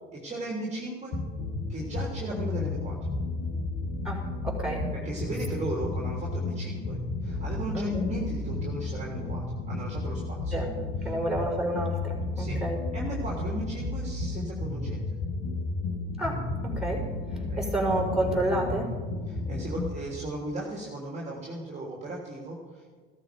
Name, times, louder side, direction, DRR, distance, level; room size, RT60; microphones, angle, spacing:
voice 1, 0.1-1.1 1.7-3.0 4.9-10.6 12.3-12.6 12.9-15.0 17.5-17.7 19.3-23.0, right 1 dB, 20° right, -3 dB, 3.1 m, -36 dB
sound 1, 1.1-19.9, left 3 dB, 50° left, 2.6 m, -33 dB
voice 2, 4.0-4.9 7.7-8.0 10.5-10.8 11.0-12.8 16.2-18.9, right 1 dB, ahead, -1 dB, 5.0 m, -30 dB
15.5 x 13.5 x 5.2 m, 1.5 s
supercardioid pair, 90°, 30 cm